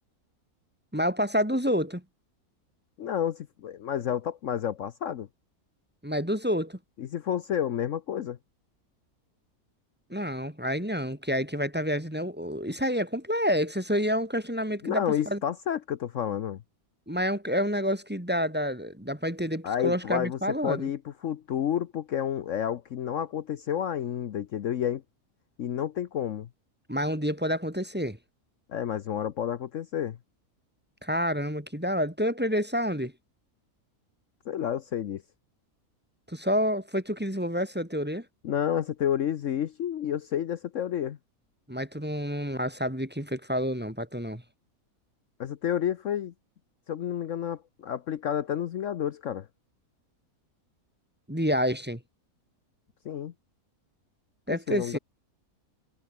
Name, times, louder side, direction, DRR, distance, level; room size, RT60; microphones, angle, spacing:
voice 1, 0.9-2.0 6.0-6.8 10.1-15.4 17.1-20.9 26.9-28.2 31.0-33.1 36.3-38.2 41.7-44.4 51.3-52.0 54.5-55.0, equal, 5° right, 2.3 m, -28 dB
voice 2, 3.0-5.3 7.0-8.4 14.8-16.6 19.6-25.0 25.6-26.5 28.7-30.2 34.5-35.2 38.4-41.2 45.4-46.3 46.9-49.5 53.0-53.3 54.5-55.0, left 9 dB, 65° left, 1.1 m, -30 dB
omnidirectional pair, 1.5 m